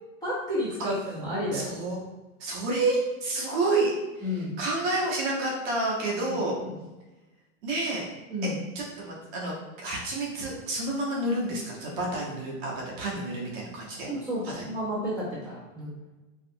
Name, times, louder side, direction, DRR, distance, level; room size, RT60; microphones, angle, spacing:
voice 1, 0.2-1.8 4.2-4.6 6.3-6.8 8.3-8.6 14.1-16.1, equal, 10° left, -9 dB, 0.6 m, -32 dB
voice 2, 1.5-2.0 2.4-3.9 4.2-6.6 7.6-8.1 8.4-14.1 14.5-14.6, right 2 dB, 40° right, -2 dB, 0.6 m, -29 dB
2.6 x 2.4 x 2.6 m, 1.1 s
supercardioid pair, 150°, 42 cm